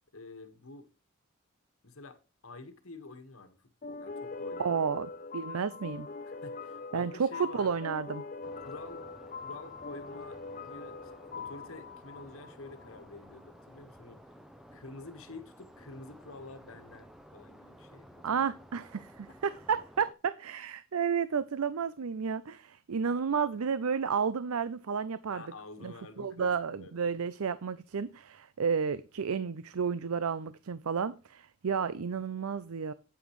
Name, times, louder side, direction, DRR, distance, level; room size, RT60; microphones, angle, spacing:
voice 1, 0.1-0.9 1.8-4.8 6.3-7.8 8.6-9.0 9.4-14.2 14.7-18.4 19.3-19.6 25.3-27.1, left 3 dB, 75° left, 1.5 m, -49 dB
sound 1, 3.8-13.1, left 4 dB, 35° left, 0.4 m, -43 dB
voice 2, 4.6-6.1 6.9-8.2 18.2-25.4 25.8-32.9, right 6 dB, 85° right, 0.5 m, -32 dB
sound 2, 8.4-20.1, equal, ahead, 0.7 m, -54 dB
9.3 x 8.8 x 3.1 m
head